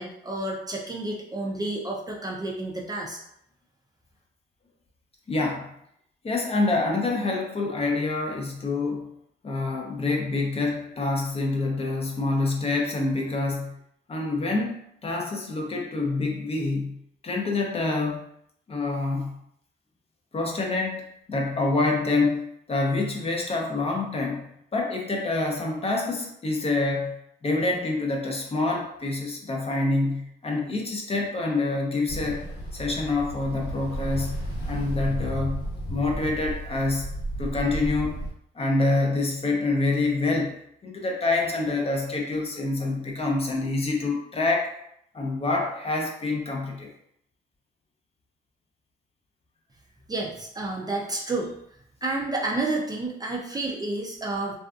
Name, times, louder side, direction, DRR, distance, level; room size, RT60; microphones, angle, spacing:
voice 1, 0.0-3.2 50.1-51.5 52.0-54.6, right 2 dB, 20° right, -2 dB, 0.4 m, -30 dB
voice 2, 5.3-5.7 6.2-9.1 9.4-13.8 14.1-17.0 17.2-18.2 18.7-19.4 20.3-27.2 27.4-32.4 32.7-34.4 34.7-37.1 37.4-38.2 38.6-40.5 40.8-44.7 45.1-46.9, left 3 dB, 30° left, 0 dB, 0.6 m, -26 dB
Ocean, 32.1-38.3, equal, 60° left, 0.9 m, -33 dB
2.5 x 2.3 x 2.4 m, 0.73 s
cardioid pair, 90°, 20 cm